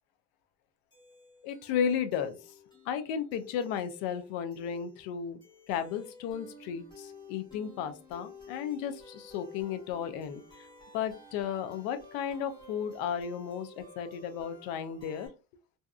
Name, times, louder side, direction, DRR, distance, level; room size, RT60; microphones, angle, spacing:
sound 1, 0.9-15.3, left 2 dB, 10° left, 1.1 m, -53 dB
voice 1, 1.4-2.5 2.9-5.4 5.7-10.7 10.9-15.3, left 8 dB, 65° left, 10 dB, 0.5 m, -34 dB
2.6 x 2.4 x 2.2 m, 0.31 s
cardioid pair, 120°, 37 cm